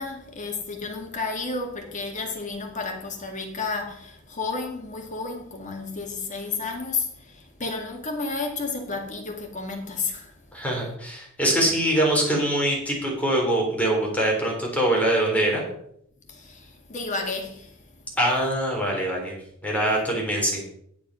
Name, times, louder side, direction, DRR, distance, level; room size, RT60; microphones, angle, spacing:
voice 1, 0.0-10.3 16.3-18.1, left 3 dB, 35° left, 2.0 m, -32 dB
voice 2, 10.5-15.6 18.2-19.3 19.6-20.6, right 1 dB, 5° left, 3.7 m, -23 dB
9.5 x 8.3 x 5.5 m
head